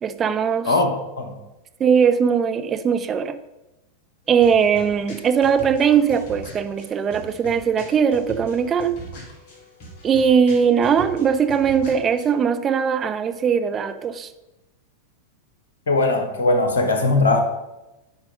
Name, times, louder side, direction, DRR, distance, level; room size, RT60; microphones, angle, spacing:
voice 1, 0.0-0.7 1.8-3.3 4.3-9.0 10.0-14.3, right 7 dB, 25° right, 9 dB, 0.6 m, -20 dB
voice 2, 0.6-1.4 15.9-17.4, left 2 dB, 65° left, 6 dB, 1.2 m, -20 dB
sound 1, 4.3-12.3, right 1 dB, 40° left, 2.5 m, -41 dB
8.9 x 4.8 x 5.3 m, 0.99 s
figure-of-eight pair, 90°, 0 cm